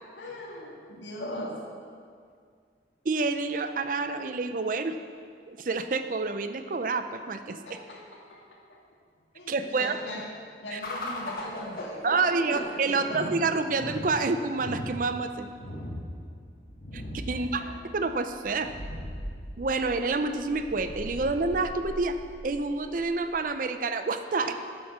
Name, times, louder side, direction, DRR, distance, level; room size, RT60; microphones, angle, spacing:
voice 1, 0.2-1.6 7.5-8.4 8.7-8.8 9.3-10.3 10.6-13.2 17.3-17.8 24.4-24.5, left 1 dB, 85° left, -3 dB, 1.9 m, -40 dB
voice 2, 3.0-5.0 5.5-7.8 9.5-10.0 10.7-10.8 12.0-15.5 16.9-17.0 17.3-17.6 17.9-18.7 19.6-22.2 22.4-24.5, right 3 dB, 45° right, 9 dB, 0.5 m, -28 dB
sound 1, 10.8-23.4, left 1 dB, 55° left, 1.6 m, -39 dB
9.1 x 7.3 x 6.0 m, 2.1 s
head